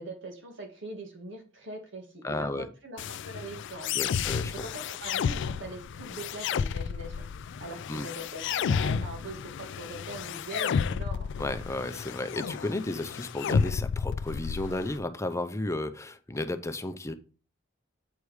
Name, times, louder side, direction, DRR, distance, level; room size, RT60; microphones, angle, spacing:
voice 1, 0.0-4.1 4.5-7.3 7.6-11.3, right 2 dB, 65° right, 1.9 m, -42 dB
voice 2, 2.2-2.7 3.9-4.6 7.9-8.1 11.4-17.1, left 2 dB, 15° left, 0.6 m, -33 dB
sound 1, 3.0-15.0, left 6 dB, 60° left, 0.3 m, -32 dB
8.4 x 4.9 x 4.8 m
head